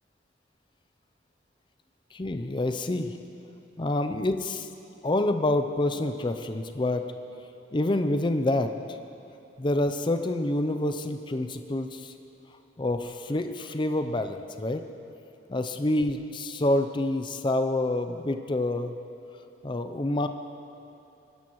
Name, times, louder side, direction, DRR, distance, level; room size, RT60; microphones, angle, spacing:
voice 1, 2.1-3.2 3.8-4.7 5.0-7.1 7.7-8.7 9.6-12.1 12.8-14.8 15.5-18.9 19.6-20.3, left 1 dB, 25° left, 7 dB, 0.5 m, -27 dB
20.5 x 10.5 x 3.1 m, 3.0 s
head